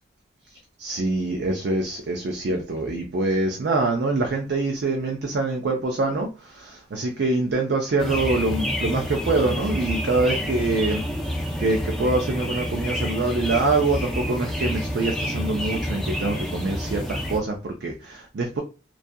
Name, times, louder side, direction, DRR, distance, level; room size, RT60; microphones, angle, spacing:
voice 1, 0.8-11.0 11.6-18.6, right 2 dB, 60° right, 2 dB, 0.4 m, -25 dB
sound 1, 8.0-17.4, equal, ahead, 0.4 m, -28 dB
2.6 x 2.3 x 2.2 m, 0.33 s
head